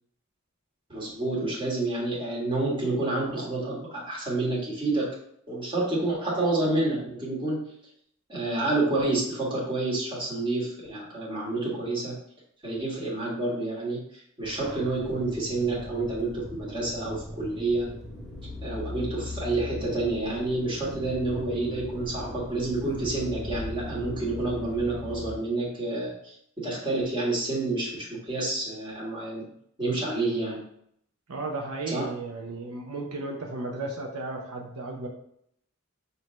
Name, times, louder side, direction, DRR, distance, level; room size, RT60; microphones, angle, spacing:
voice 1, 0.9-5.1 5.5-7.6 8.3-12.1 12.6-14.0 14.4-17.9 18.6-29.5 29.8-30.6 31.9-32.1, right 2 dB, 25° right, -5 dB, 1.6 m, -29 dB
sound 1, 14.4-25.4, left 1 dB, ahead, 0.9 m, -39 dB
voice 2, 31.3-35.1, right 2 dB, 80° right, 0 dB, 0.8 m, -34 dB
6.1 x 2.8 x 3.1 m, 0.70 s
head